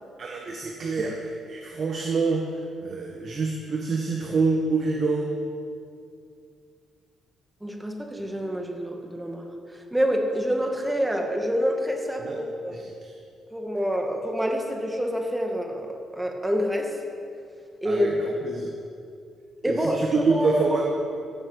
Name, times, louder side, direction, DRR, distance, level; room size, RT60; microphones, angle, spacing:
voice 1, 0.2-5.3 12.2-12.4 12.7-13.1 17.8-18.7 19.7-20.8, right 4 dB, 50° right, 0 dB, 1.6 m, -27 dB
voice 2, 7.6-9.5 9.9-12.8 13.5-17.0 17.8-18.3 19.6-20.6, equal, 10° right, 2 dB, 2.2 m, -27 dB
16.0 x 7.2 x 8.3 m, 2.4 s
cardioid pair, 90°, 0 cm